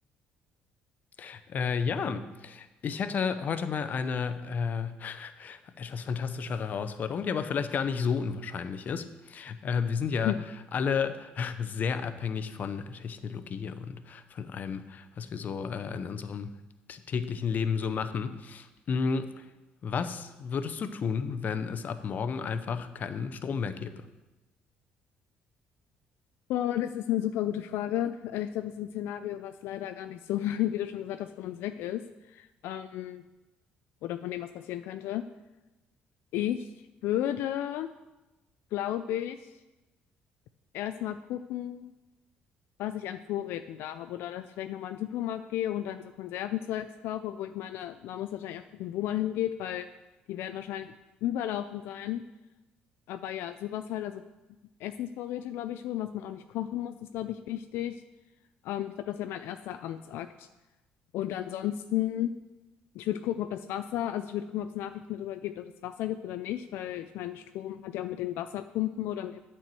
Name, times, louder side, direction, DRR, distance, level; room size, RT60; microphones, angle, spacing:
voice 1, 1.2-10.4 10.7-16.5 16.9-19.4 19.8-23.9, left 6 dB, 50° left, 11 dB, 0.7 m, -32 dB
voice 2, 26.5-32.0 32.3-33.2 34.0-35.2 36.3-36.7 37.0-37.9 38.7-39.5 40.7-41.9 42.8-49.9 50.3-50.9 51.2-52.2 53.1-54.2 54.8-58.0 58.6-60.5 61.1-62.3 62.9-69.4, left 12 dB, 80° left, 9 dB, 0.4 m, -33 dB
9.2 x 4.5 x 7.6 m, 1.1 s
cardioid pair, 100°, 4 cm